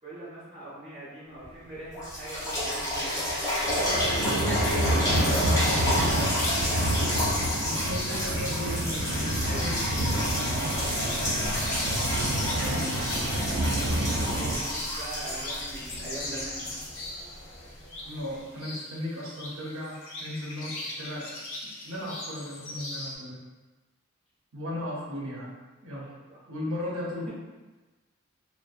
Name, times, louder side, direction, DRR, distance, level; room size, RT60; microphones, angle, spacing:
voice 1, 0.0-3.3 3.7-6.8 9.0-10.0 13.1-16.8 25.9-26.4, right 1 dB, 30° right, -12 dB, 0.7 m, -42 dB
sound 1, 1.4-1.5 1.9-17.7 18.3-18.4, left 1 dB, 15° left, 0.5 m, -30 dB
sound 2, 3.6-14.6, right 1 dB, 60° right, 0.3 m, -29 dB
sound 3, 5.6-23.2, left 2 dB, 80° left, 0.5 m, -40 dB
voice 2, 7.4-9.7 12.6-13.4 18.1-21.3 21.8-23.4 24.5-25.5 25.8-26.1 26.5-27.3, left 1 dB, 85° right, -4 dB, 0.7 m, -36 dB
2.5 x 2.1 x 2.4 m, 1.2 s
head